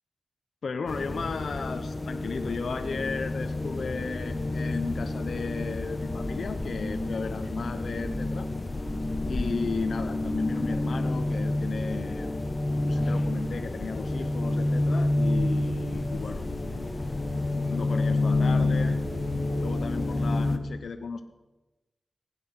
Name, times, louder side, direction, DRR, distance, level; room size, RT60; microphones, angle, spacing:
voice 1, 0.6-8.5 9.3-12.3 12.8-16.5 17.5-19.0 19.6-21.2, left 4 dB, 80° left, 7 dB, 0.8 m, -34 dB
sound 1, 0.9-20.6, left 2 dB, 25° left, 1.2 m, -29 dB
20.0 x 10.0 x 6.0 m, 1.1 s
wide cardioid pair, 140°, 0 cm